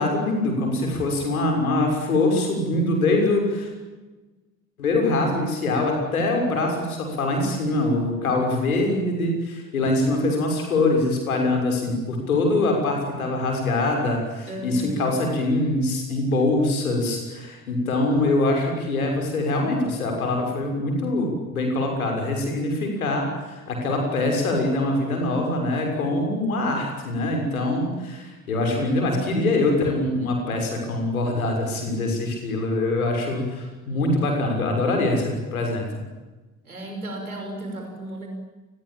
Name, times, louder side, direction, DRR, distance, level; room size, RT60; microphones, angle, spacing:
voice 1, 0.0-3.7 4.8-35.8, left 2 dB, 80° left, 2 dB, 6.5 m, -23 dB
voice 2, 14.5-15.2 36.6-38.3, right 1 dB, 85° right, 3 dB, 5.6 m, -34 dB
28.5 x 21.5 x 8.9 m, 1.2 s
figure-of-eight pair, 50°, 42 cm